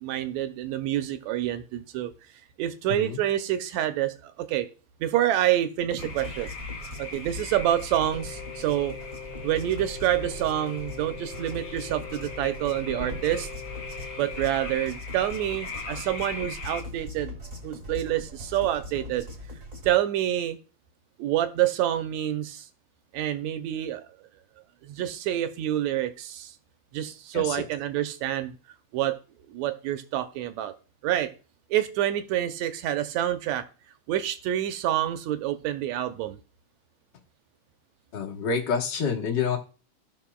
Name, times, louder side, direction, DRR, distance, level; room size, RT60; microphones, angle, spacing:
voice 1, 0.0-2.1 2.6-4.7 5.0-6.5 7.0-8.9 9.4-13.5 14.2-17.3 17.6-19.3 19.8-20.6 21.2-22.7 23.1-24.0 24.8-26.5 26.9-28.5 28.9-29.2 29.5-30.7 31.0-31.3 31.7-33.6 34.1-36.4, right 12 dB, 80° right, 9 dB, 1.8 m, -27 dB
voice 2, 2.9-3.2 27.3-27.7 38.1-39.6, left 6 dB, 50° left, 0 dB, 1.5 m, -28 dB
sound 1, 5.8-19.9, left 1 dB, 20° right, 1.2 m, -40 dB
sound 2, 6.0-16.8, left 4 dB, 80° left, 0.9 m, -41 dB
sound 3, 8.1-14.4, left 7 dB, 20° left, 2.0 m, -42 dB
16.5 x 5.7 x 2.3 m, 0.35 s
omnidirectional pair, 3.4 m